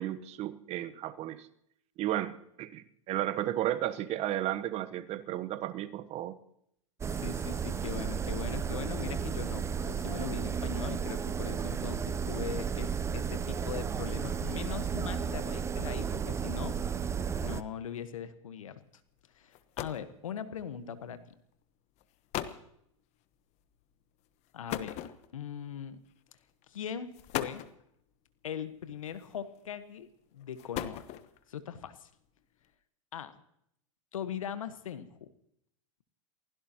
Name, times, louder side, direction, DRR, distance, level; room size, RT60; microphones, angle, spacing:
voice 1, 0.0-1.5 2.0-6.3, right 13 dB, 40° right, 13 dB, 1.0 m, -33 dB
sound 1, 7.0-17.6, right 7 dB, 15° right, 0.6 m, -33 dB
voice 2, 7.1-16.8 17.4-18.8 19.4-21.3 24.5-25.0 25.3-26.0 26.7-27.6 28.4-31.0 31.5-32.1 33.1-33.4 34.1-35.3, left 8 dB, 85° left, 12 dB, 1.3 m, -40 dB
sound 2, 19.2-19.3 19.5-20.1 21.1-21.4 22.0-22.1 22.3-22.7 24.7-25.5 26.5-26.6 27.1-27.8 29.1-29.6 30.4-31.4, left 12 dB, 40° left, 1.1 m, -38 dB
28.5 x 16.0 x 3.0 m, 0.74 s
hypercardioid pair, 110°, 17 cm